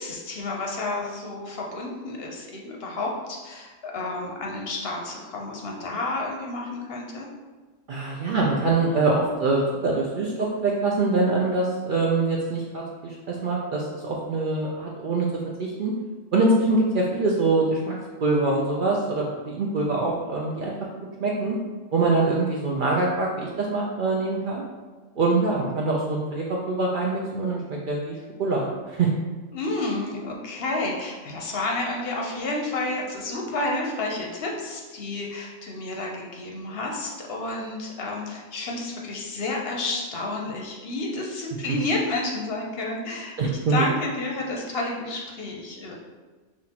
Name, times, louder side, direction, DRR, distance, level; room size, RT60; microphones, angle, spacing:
voice 1, 0.0-7.3 29.5-43.3 43.7-45.9, left 2 dB, 60° left, -1 dB, 0.8 m, -30 dB
voice 2, 7.9-15.3 15.6-15.9 16.3-17.9 18.2-20.7 21.2-21.5 21.9-24.6 25.2-29.1 43.4-43.9, right 3 dB, 60° right, -3 dB, 0.5 m, -24 dB
5.7 x 2.5 x 2.8 m, 1.3 s
omnidirectional pair, 1.3 m